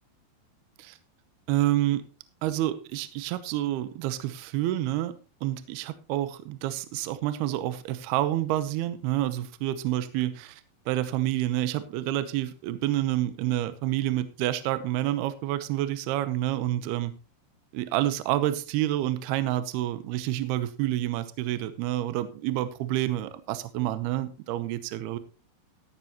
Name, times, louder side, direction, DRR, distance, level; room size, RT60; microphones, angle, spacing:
voice 1, 1.5-2.0 2.4-5.1 5.4-10.6 10.9-17.1 17.7-25.2, right 14 dB, 75° right, 13 dB, 2.6 m, -28 dB
13.5 x 11.5 x 3.0 m, 0.32 s
omnidirectional pair, 5.2 m